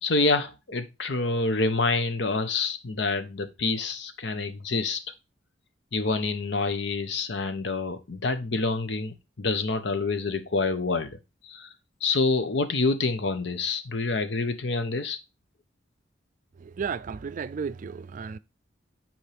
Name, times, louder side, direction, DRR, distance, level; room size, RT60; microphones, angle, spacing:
voice 1, 0.0-5.0 5.9-11.2 11.4-11.7 12.0-15.2, left 3 dB, 70° left, 0.9 m, -27 dB
voice 2, 16.6-18.4, right 6 dB, 45° right, 0.4 m, -33 dB
8.3 x 4.4 x 3.4 m
head